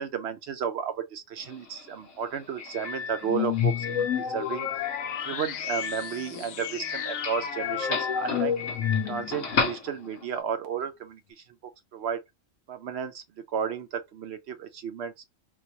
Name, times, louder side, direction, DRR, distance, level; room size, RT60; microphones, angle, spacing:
voice 1, 0.0-4.7 5.2-8.5 9.0-12.2 12.7-15.1, right 7 dB, 65° right, 0.7 m, -33 dB
Doorbell, 1.4-10.4, left 5 dB, 65° left, 1.3 m, -35 dB
sound 1, 3.2-9.5, left 9 dB, 85° left, 1.0 m, -30 dB
4.0 x 2.3 x 2.8 m
omnidirectional pair, 1.4 m